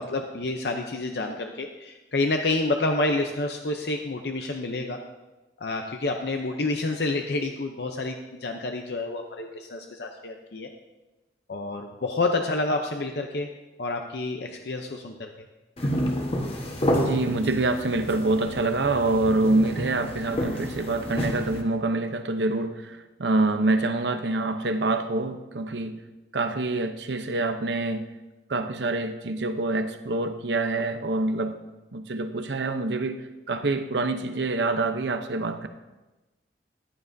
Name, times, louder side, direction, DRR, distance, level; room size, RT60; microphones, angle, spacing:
voice 1, 0.0-5.0 5.6-10.7 11.5-13.5 13.8-15.3, left 2 dB, 70° left, 4 dB, 0.7 m, -28 dB
sound 1, 15.8-21.6, equal, 35° left, 1.2 m, -29 dB
voice 2, 17.0-26.0 26.3-28.1 28.5-31.6 31.9-35.7, right 2 dB, 80° right, 8 dB, 0.8 m, -26 dB
14.0 x 11.5 x 2.7 m, 1.1 s
head